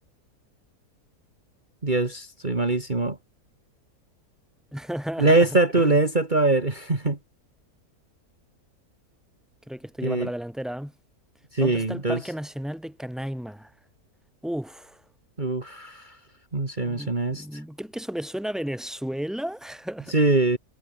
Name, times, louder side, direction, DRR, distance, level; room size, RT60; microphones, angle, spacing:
voice 1, 1.8-3.2 5.2-7.2 10.0-10.3 11.5-12.2 15.4-16.2 16.5-17.6 20.1-20.6, right 2 dB, 30° right, 2.7 m, -23 dB
voice 2, 4.7-6.0 9.7-10.9 11.6-13.7 14.4-15.0 16.8-20.1, equal, ahead, 4.1 m, -33 dB
omnidirectional pair, 1.6 m